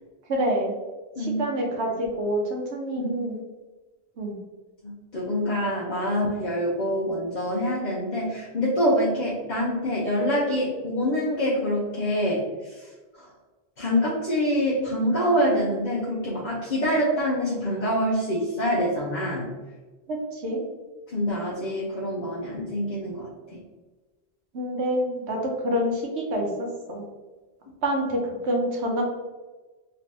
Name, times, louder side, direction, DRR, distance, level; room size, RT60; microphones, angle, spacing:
voice 1, 0.3-0.7 1.2-3.4 4.2-4.4 20.1-20.6 24.5-26.5 26.9-27.0 27.8-29.0, equal, 85° right, 0 dB, 1.1 m, -27 dB
voice 2, 4.8-12.9 13.2-13.3 13.8-19.5 21.1-23.6, equal, 50° left, -6 dB, 0.7 m, -26 dB
3.3 x 3.0 x 2.9 m, 1.3 s
omnidirectional pair, 1.1 m